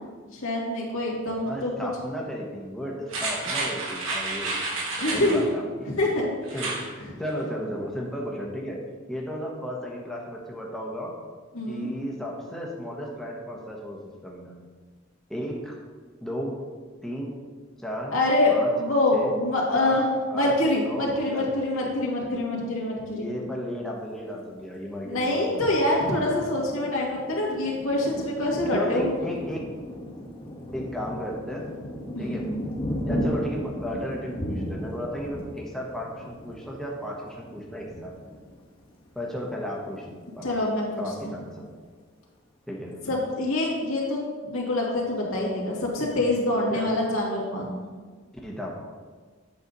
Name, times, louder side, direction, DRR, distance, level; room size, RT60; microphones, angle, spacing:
voice 1, 0.3-1.7 5.0-5.4 5.9-7.1 11.5-11.9 18.1-20.1 20.3-23.3 25.0-29.1 32.1-32.6 40.4-40.9 41.2-41.3 43.1-47.8, left 1 dB, 80° left, -3 dB, 2.1 m, -25 dB
voice 2, 1.4-4.6 5.1-5.9 6.5-8.8 9.1-11.1 11.7-14.6 15.3-15.8 16.2-16.6 17.0-17.3 17.8-18.1 18.5-18.7 19.1-19.3 19.8-20.0 20.3-20.5 20.8-21.5 22.3-22.4 23.1-25.8 28.7-29.7 30.7-31.7 32.2-32.5 33.1-38.1 39.1-40.5 41.0-41.7 42.7-43.0 46.7-46.9 48.4-48.8, equal, ahead, -3 dB, 0.9 m, -34 dB
sound 1, 3.1-5.4 6.4-6.8 7.2-7.3, right 3 dB, 75° right, 2.3 m, -30 dB
Thunder, 25.1-39.4 39.9-40.0 40.3-41.0, equal, 25° left, 1.2 m, -36 dB
8.3 x 6.7 x 3.9 m, 1.5 s
head